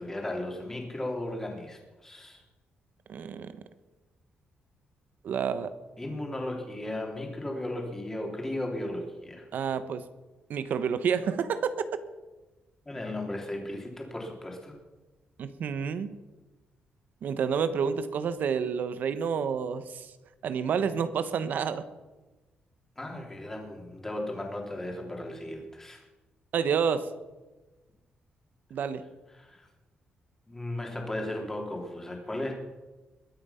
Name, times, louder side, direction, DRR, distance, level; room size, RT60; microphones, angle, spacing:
voice 1, 0.0-2.4 6.0-9.4 12.9-14.8 23.0-26.0 29.3-29.7 30.5-32.5, left 1 dB, 15° left, 1 dB, 3.1 m, -36 dB
voice 2, 3.1-3.6 5.2-5.7 9.5-10.0 10.5-11.8 15.4-16.2 17.2-20.1 20.4-21.8 26.5-27.1 28.7-29.0, right 7 dB, 65° right, 12 dB, 1.1 m, -29 dB
22.0 x 8.7 x 5.7 m, 1.2 s
cardioid pair, 140°, 3 cm